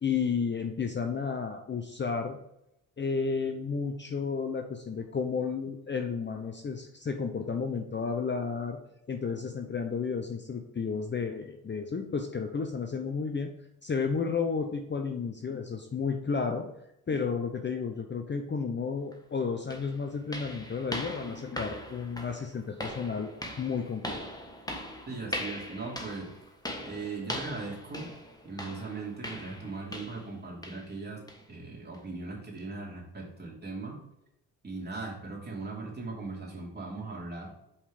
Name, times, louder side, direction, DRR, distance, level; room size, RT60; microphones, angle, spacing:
voice 1, 0.0-2.4 3.0-8.8 9.1-13.5 13.8-16.7 17.1-23.3 23.6-24.2, left 5 dB, 25° left, 5 dB, 0.7 m, -32 dB
sound 1, 19.1-19.2 19.7-30.3 30.6-30.9 31.3-31.5 31.9-32.0 32.6-32.7, left 1 dB, 10° left, 1.5 m, -40 dB
voice 2, 25.1-26.3 26.8-28.1 28.4-31.2 31.5-34.0 34.6-37.5, right 3 dB, 25° right, -4 dB, 2.9 m, -39 dB
5.6 x 5.1 x 4.9 m, 0.83 s
supercardioid pair, 65°, 40 cm